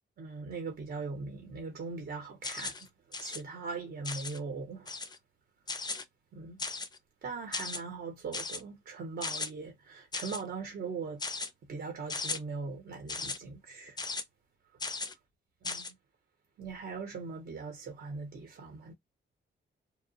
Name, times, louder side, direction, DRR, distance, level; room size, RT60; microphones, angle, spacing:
voice 1, 0.2-2.7 3.2-4.9 6.3-6.6 7.2-11.2 11.7-14.0 15.6-15.8 16.6-18.9, right 4 dB, 55° right, 0.7 m, -40 dB
sound 1, 2.4-2.8 3.1-3.4 4.0-4.4 4.9-5.2 5.7-6.0 6.6-7.0 7.5-7.8 8.3-8.6 9.2-9.5 10.1-10.4 11.2-11.5 12.1-12.4 13.1-13.4 14.0-14.2 14.8-15.1 15.6-15.9, left 4 dB, 20° left, 0.4 m, -36 dB
2.8 x 2.0 x 2.6 m
wide cardioid pair, 120°, 20 cm